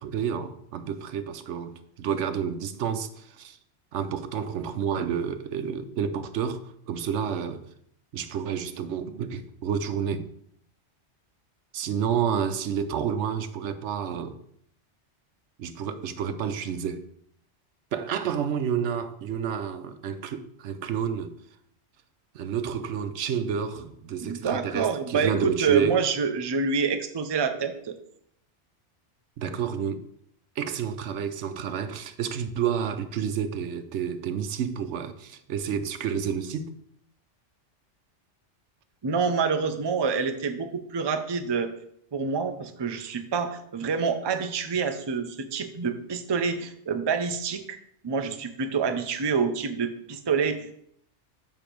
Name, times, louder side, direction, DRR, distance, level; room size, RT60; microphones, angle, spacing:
voice 1, 0.0-3.6 3.9-7.6 8.1-10.3 11.7-14.4 15.6-17.0 17.9-21.3 22.3-26.0 29.4-30.0 30.6-36.7, right 7 dB, 75° right, 0.9 m, -30 dB
voice 2, 24.2-28.0 39.0-41.7 42.1-47.8 48.0-50.7, right 5 dB, 30° right, 0.5 m, -27 dB
7.0 x 5.7 x 4.5 m
omnidirectional pair, 1.2 m